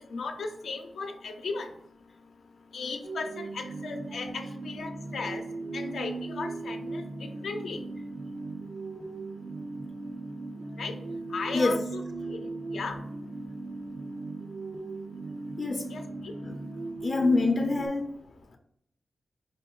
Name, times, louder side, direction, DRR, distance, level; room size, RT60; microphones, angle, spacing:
voice 1, 0.1-1.7 2.7-5.4 5.7-7.8 10.8-10.9 11.3-12.0 12.3-13.0 15.9-16.3, left 4 dB, 90° left, 0.6 m, -36 dB
sound 1, 3.0-17.9, right 3 dB, 65° right, 0.5 m, -38 dB
voice 2, 17.0-18.1, left 3 dB, 45° left, 0.5 m, -25 dB
5.1 x 2.5 x 3.7 m
wide cardioid pair, 85°, 0 cm